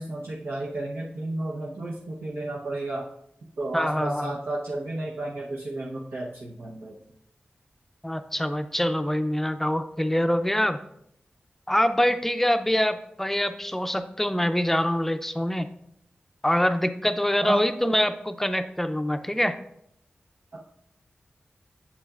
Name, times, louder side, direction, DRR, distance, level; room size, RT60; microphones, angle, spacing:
voice 1, 0.0-3.0 3.6-7.0 17.4-17.7 20.5-20.6, right 2 dB, 85° right, -5 dB, 1.0 m, -32 dB
voice 2, 3.7-4.3 8.0-10.8 11.7-15.7 16.4-19.5, equal, 10° left, 9 dB, 0.5 m, -25 dB
8.4 x 6.9 x 2.5 m, 0.75 s
wide cardioid pair, 80°, 4 cm